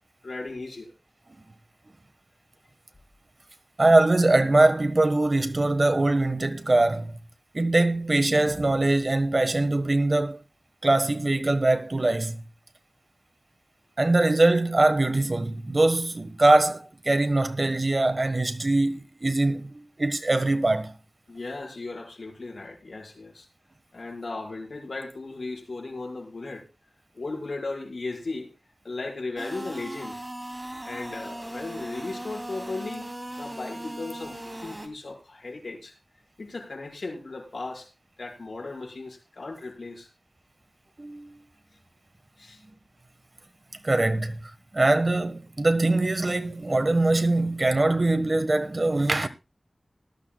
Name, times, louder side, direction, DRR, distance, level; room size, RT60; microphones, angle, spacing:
voice 1, 0.2-0.9 21.3-23.5 23.9-26.6 27.1-28.5 28.8-30.2 30.8-33.1 33.4-35.9 36.4-37.9 38.2-40.1 42.4-42.6, left 3 dB, 85° left, 4.9 m, -36 dB
voice 2, 3.8-7.1 7.5-10.4 10.8-12.4 14.0-20.9 41.0-41.4 43.8-49.3, right 2 dB, 50° right, 1.4 m, -22 dB
sound 1, 29.4-34.9, right 1 dB, 20° right, 2.9 m, -38 dB
19.0 x 12.5 x 2.3 m
wide cardioid pair, 60°, 0 cm